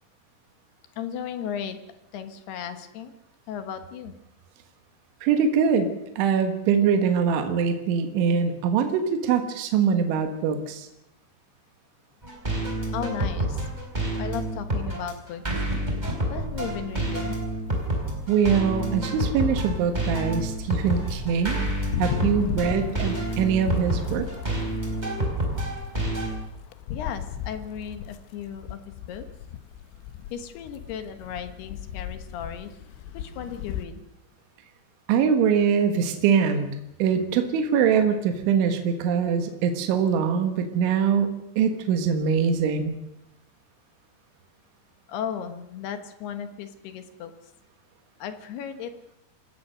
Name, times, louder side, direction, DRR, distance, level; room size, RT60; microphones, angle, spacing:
voice 1, 1.0-1.8 2.1-3.1 3.5-4.1 12.9-13.7 14.1-15.6 16.3-17.4 26.9-28.8 29.1-29.3 30.3-32.8 33.1-34.0 45.1-47.3 48.2-48.9, left 8 dB, 70° left, 8 dB, 3.1 m, -35 dB
voice 2, 5.2-5.9 6.2-10.9 18.3-21.6 22.0-24.3 35.1-36.7 37.0-43.0, right 7 dB, 80° right, 6 dB, 3.9 m, -23 dB
sound 1, 12.2-26.3, right 1 dB, 10° right, 3.8 m, -28 dB
sound 2, 16.9-18.2 18.5-33.9, left 10 dB, 85° left, 3.4 m, -36 dB
27.0 x 17.5 x 6.4 m, 0.84 s
omnidirectional pair, 5.4 m